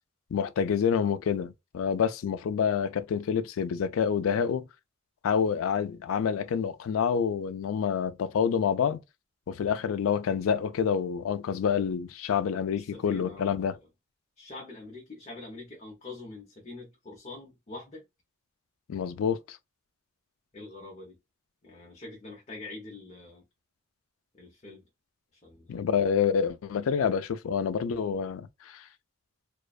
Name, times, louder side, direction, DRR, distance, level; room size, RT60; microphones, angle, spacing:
voice 1, 0.3-4.7 5.2-9.0 9.5-13.8 18.9-19.6 25.7-28.8, left 7 dB, 85° left, 0.3 m, -27 dB
voice 2, 12.7-13.8 14.4-18.0 20.5-21.2 21.6-23.4 24.3-24.8 25.3-25.9, left 2 dB, 35° left, 0.6 m, -44 dB
2.4 x 2.2 x 2.3 m
head